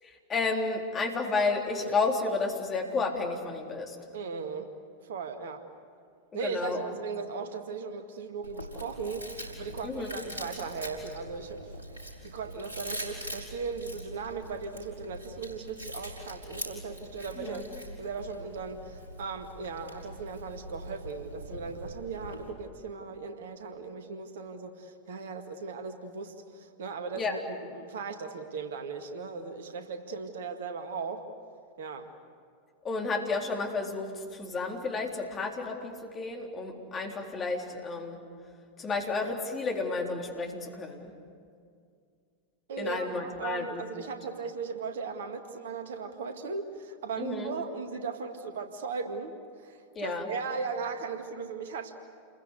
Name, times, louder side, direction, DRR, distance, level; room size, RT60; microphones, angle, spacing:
voice 1, 0.0-4.0 6.4-6.8 9.8-10.2 17.4-17.6 27.1-27.4 32.8-38.2 38.8-41.1 42.8-44.1 47.2-47.5 50.0-50.3, left 3 dB, 25° left, 1 dB, 3.8 m, -32 dB
voice 2, 4.1-4.7 5.0-5.6 6.3-11.6 12.2-17.6 18.0-31.3 31.8-32.1 42.7-51.9, right 5 dB, 60° right, 6 dB, 2.0 m, -37 dB
Chewing mastication, 8.4-22.5, equal, 75° right, 5.7 m, -43 dB
29.5 x 22.0 x 8.2 m, 2.3 s
figure-of-eight pair, 90°, 0 cm